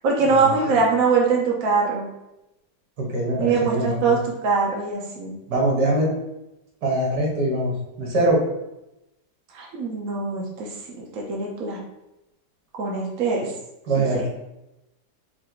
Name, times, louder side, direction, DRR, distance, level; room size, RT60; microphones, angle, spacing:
voice 1, 0.0-2.1 3.4-5.4 9.5-11.8 12.7-13.5 14.0-14.3, right 4 dB, 60° right, -2 dB, 1.2 m, -23 dB
voice 2, 3.0-4.2 5.5-6.1 6.8-7.7 8.0-8.4 13.9-14.3, right 1 dB, 75° right, -2 dB, 1.8 m, -22 dB
4.6 x 2.6 x 4.4 m, 0.91 s
omnidirectional pair, 1.8 m